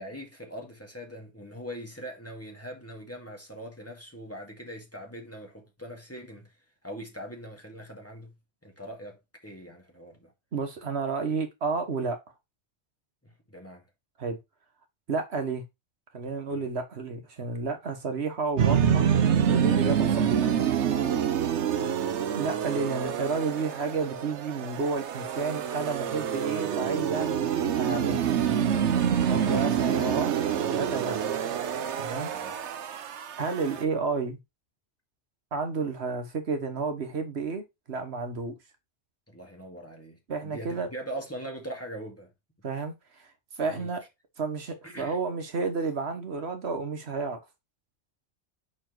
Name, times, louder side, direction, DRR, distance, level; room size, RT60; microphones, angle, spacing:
voice 1, 0.0-6.5 6.8-8.3 8.6-10.3 13.2-13.8 16.5-16.7 32.3-32.5 39.3-42.3 43.6-43.9 44.8-45.2, equal, 10° left, 2.0 m, -42 dB
voice 2, 10.5-12.2 14.2-14.4 15.1-15.6 16.1-19.1 19.5-20.6 22.3-28.2 29.3-30.3 30.7-31.3 32.0-32.3 33.3-34.4 35.5-38.5 40.3-40.9 42.6-43.3 43.6-44.0 44.4-47.4, right 4 dB, 70° right, 1.4 m, -31 dB
sound 1, 18.6-33.8, right 8 dB, 85° right, 1.1 m, -27 dB
6.1 x 4.4 x 4.5 m
omnidirectional pair, 1.1 m